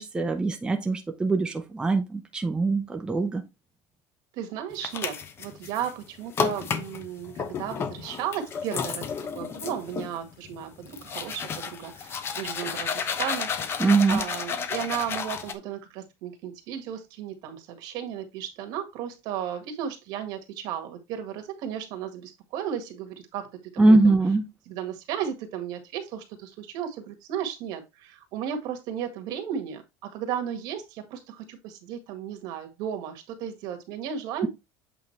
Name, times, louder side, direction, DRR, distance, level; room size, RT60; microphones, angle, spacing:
voice 1, 0.0-3.4 13.8-14.2 23.8-24.5, right 3 dB, 10° right, 0.8 m, -22 dB
voice 2, 4.3-9.1 9.3-24.1 24.6-34.5, right 9 dB, 65° right, 1.7 m, -34 dB
sound 1, 4.7-5.9 6.3-15.5, left 6 dB, 35° left, 0.8 m, -32 dB
8.1 x 3.8 x 3.2 m
cardioid pair, 135°, 7 cm